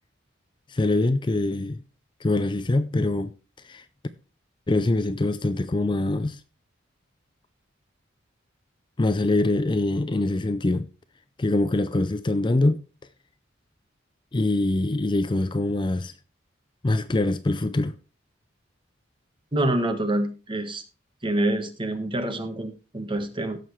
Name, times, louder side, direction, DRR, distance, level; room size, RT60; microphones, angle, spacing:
voice 1, 0.7-1.8 2.2-3.3 3.6-3.8 4.7-6.4 9.0-10.9 11.4-12.8 14.3-16.1 16.8-17.9, left 2 dB, 25° left, 0.5 m, -24 dB
voice 2, 19.5-20.8 21.2-23.6, right 1 dB, 25° right, 1.3 m, -26 dB
16.5 x 6.6 x 3.2 m
head